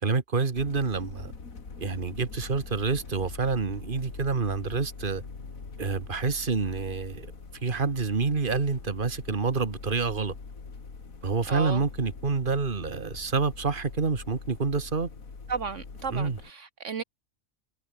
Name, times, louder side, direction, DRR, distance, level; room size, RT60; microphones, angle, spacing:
voice 1, 0.0-1.3 1.8-5.2 5.8-7.3 7.6-10.3 11.2-15.1 16.1-16.4, right 4 dB, 40° right, 1.9 m, -28 dB
sound 1, 0.5-16.5, left 4 dB, 85° left, 3.0 m, -43 dB
voice 2, 11.5-11.8 15.5-17.0, right 6 dB, 65° right, 1.5 m, -33 dB
omnidirectional pair, 1.4 m